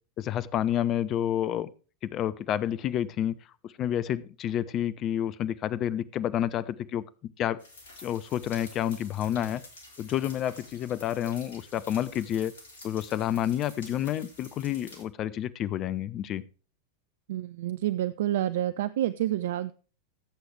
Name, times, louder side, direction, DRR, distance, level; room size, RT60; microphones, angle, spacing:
voice 1, 0.2-1.7 2.0-3.4 3.6-7.0 7.4-7.6 8.0-9.6 10.0-12.5 12.8-16.4, left 11 dB, 35° left, 17 dB, 0.7 m, -29 dB
sound 1, 7.6-15.0, left 2 dB, 60° left, 3.0 m, -50 dB
voice 2, 17.3-19.7, right 13 dB, 55° right, 14 dB, 0.4 m, -28 dB
16.0 x 8.0 x 3.3 m, 0.37 s
figure-of-eight pair, 90°, 0 cm